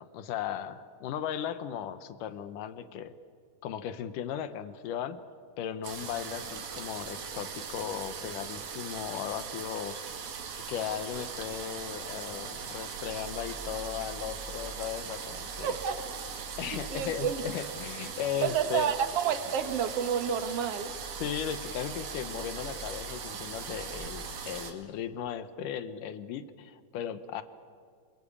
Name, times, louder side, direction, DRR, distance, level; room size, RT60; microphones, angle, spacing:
voice 1, 0.0-3.1 3.6-5.2 5.6-10.3 10.7-15.7 16.6-18.9 21.2-27.4, left 9 dB, 70° left, 12 dB, 2.1 m, -36 dB
sound 1, 5.8-24.7, right 6 dB, 70° right, 4.0 m, -40 dB
voice 2, 15.6-16.0 16.7-17.4 18.4-20.9, right 8 dB, 55° right, 8 dB, 1.9 m, -30 dB
27.5 x 21.5 x 8.6 m, 2.1 s
omnidirectional pair, 4.6 m